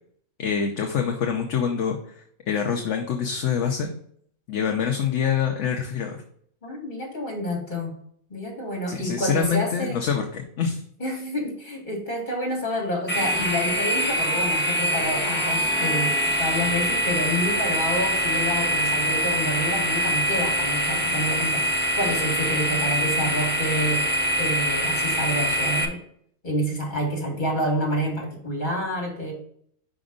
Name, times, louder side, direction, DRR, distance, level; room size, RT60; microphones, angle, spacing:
voice 1, 0.4-2.0 2.5-3.9 4.5-6.2 8.9-10.8, left 7 dB, 65° left, 2 dB, 1.0 m, -25 dB
voice 2, 6.6-7.9 8.3-10.0 11.0-21.6 22.0-24.0 24.4-26.0 26.4-29.3, equal, 35° left, -1 dB, 2.0 m, -28 dB
sound 1, 13.1-25.9, equal, 15° left, 0.4 m, -24 dB
5.2 x 5.1 x 3.8 m, 0.64 s
omnidirectional pair, 1.4 m